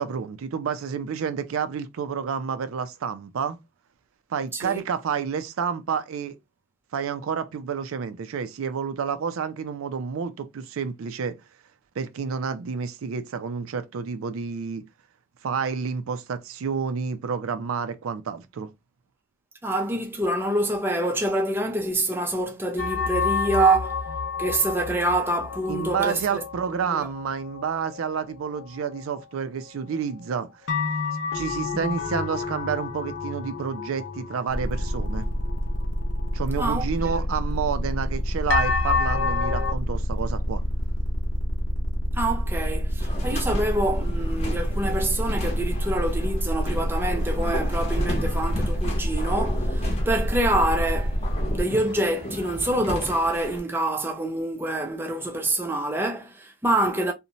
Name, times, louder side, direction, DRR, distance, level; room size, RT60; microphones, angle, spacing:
voice 1, 0.0-3.6 4.3-6.4 6.9-11.4 12.0-14.9 15.4-18.7 25.7-30.5 31.3-35.3 36.3-40.6, right 6 dB, 85° right, 0.4 m, -29 dB
voice 2, 19.6-24.0 24.4-26.4 26.8-27.1 31.7-31.9 36.6-36.8 42.1-51.2 51.5-57.1, right 1 dB, 10° right, 0.4 m, -26 dB
sound 1, 22.8-29.6 29.9-30.0 30.7-36.6 37.1-37.2 38.5-39.7, left 5 dB, 60° left, 0.5 m, -30 dB
sound 2, 34.5-51.6, equal, 85° left, 0.8 m, -27 dB
sound 3, 43.0-53.6, left 1 dB, 30° left, 0.8 m, -34 dB
2.6 x 2.1 x 2.7 m
head